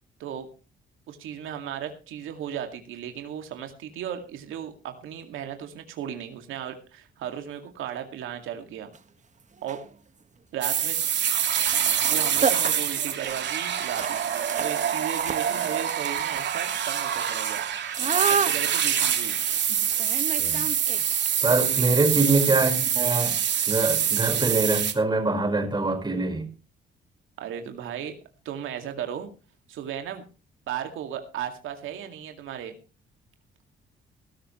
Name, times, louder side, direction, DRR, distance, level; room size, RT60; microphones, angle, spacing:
voice 1, 1.1-8.9 9.6-9.8 10.5-11.0 12.1-14.2 14.6-17.6 18.2-19.4 21.6-21.8 27.4-28.2 28.4-29.3 29.7-30.3 30.7-32.8, right 9 dB, 85° right, 2.2 m, -35 dB
sound 1, 8.9-9.0 9.6-9.9 11.7-11.8 12.1-12.2 12.4-21.3, right 5 dB, 35° right, 1.6 m, -32 dB
sound 2, 10.6-24.9, right 9 dB, 65° right, 2.8 m, -25 dB
voice 2, 21.4-23.4 23.7-26.5, right 2 dB, 20° right, 4.8 m, -24 dB
19.5 x 12.5 x 3.1 m
cardioid pair, 90°, 20 cm